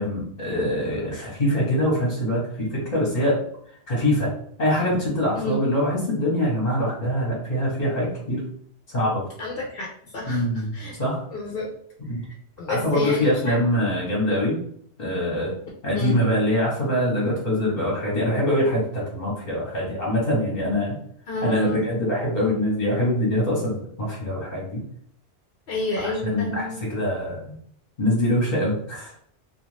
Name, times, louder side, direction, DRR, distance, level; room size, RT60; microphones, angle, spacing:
voice 1, 0.0-3.4 3.9-4.3 4.6-8.4 8.9-9.2 10.3-10.7 11.0-11.2 12.0-12.2 12.7-14.6 15.0-15.5 15.8-21.0 21.4-24.8 26.0-27.6 28.0-29.2, left 1 dB, 45° left, -5 dB, 1.0 m, -24 dB
voice 2, 9.4-10.4 10.7-11.0 11.3-11.7 12.2-13.6 15.9-16.2 21.3-21.9 25.7-26.8, left 2 dB, 60° left, -3 dB, 0.7 m, -29 dB
2.4 x 2.4 x 3.1 m, 0.65 s
omnidirectional pair, 1.1 m